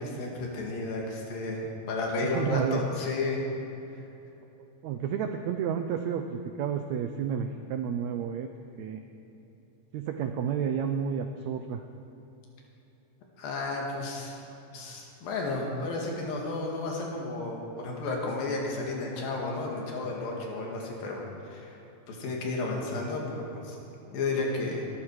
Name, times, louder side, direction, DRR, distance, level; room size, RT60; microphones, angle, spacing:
voice 1, 0.0-1.6 1.9-3.4 13.4-14.4 14.7-21.7 22.1-23.8 24.1-24.8, left 3 dB, 80° left, -1 dB, 3.8 m, -32 dB
voice 2, 2.2-2.8 4.8-8.5 8.8-9.0 9.9-11.8, right 8 dB, 90° right, 6 dB, 1.6 m, -31 dB
20.5 x 12.5 x 4.8 m, 3.0 s
omnidirectional pair, 4.1 m